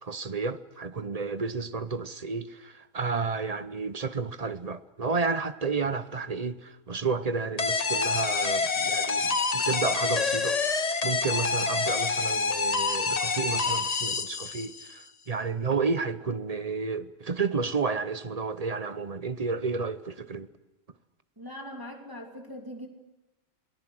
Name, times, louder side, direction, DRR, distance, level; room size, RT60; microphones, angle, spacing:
voice 1, 0.0-20.5, right 4 dB, 35° right, 0.8 m, -31 dB
sound 1, 7.6-14.9, left 4 dB, 35° left, 0.9 m, -27 dB
voice 2, 21.4-22.9, left 1 dB, 15° right, 2.8 m, -41 dB
28.0 x 18.5 x 6.2 m
omnidirectional pair, 1.3 m